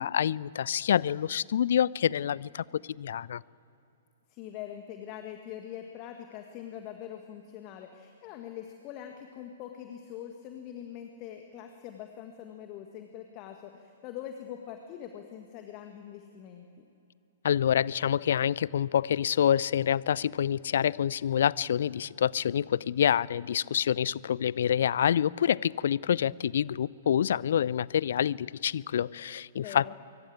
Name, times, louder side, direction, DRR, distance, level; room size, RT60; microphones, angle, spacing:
voice 1, 0.0-3.4 17.4-29.9, left 9 dB, 55° left, 24 dB, 0.5 m, -27 dB
voice 2, 4.3-16.8 29.6-29.9, left 10 dB, 30° left, 5 dB, 1.8 m, -43 dB
24.5 x 24.0 x 8.7 m, 2.9 s
figure-of-eight pair, 115°, 0 cm